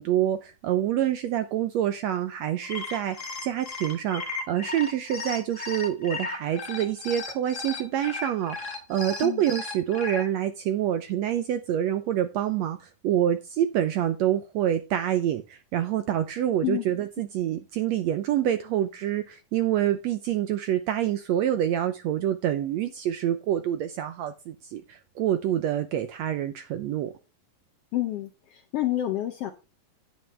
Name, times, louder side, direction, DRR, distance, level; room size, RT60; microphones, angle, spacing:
voice 1, 0.0-27.1, right 11 dB, 80° right, 1.6 m, -27 dB
sound 1, 2.5-10.2, left 3 dB, 40° left, 1.1 m, -35 dB
voice 2, 27.9-29.5, left 14 dB, 80° left, 1.3 m, -28 dB
10.5 x 9.3 x 3.3 m
omnidirectional pair, 3.8 m